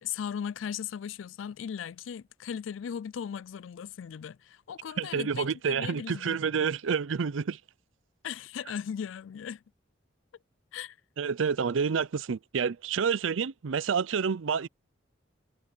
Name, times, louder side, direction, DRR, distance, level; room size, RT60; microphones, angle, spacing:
voice 1, 0.0-6.4 8.2-9.6 10.7-11.0, left 8 dB, 80° left, 0.4 m, -37 dB
voice 2, 5.0-7.6 11.2-14.7, right 6 dB, 85° right, 0.5 m, -29 dB
head